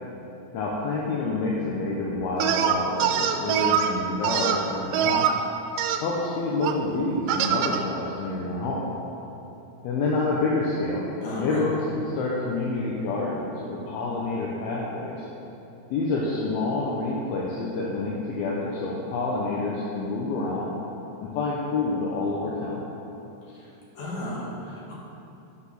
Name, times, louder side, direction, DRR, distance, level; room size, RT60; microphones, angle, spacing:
voice 1, 0.5-5.3 6.0-8.8 9.8-11.0 11.4-15.3 15.9-20.7 21.2-22.8, left 3 dB, 75° left, -4 dB, 2.5 m, -28 dB
sound 1, 2.4-3.9 4.2-5.3 5.8-6.0 6.6-6.7 7.3-7.8, right 8 dB, 90° right, 3.0 m, -23 dB
voice 2, 11.2-11.6 23.5-23.7 23.9-24.9, left 1 dB, 50° left, -6 dB, 3.1 m, -34 dB
12.0 x 6.0 x 6.1 m, 3.0 s
omnidirectional pair, 5.1 m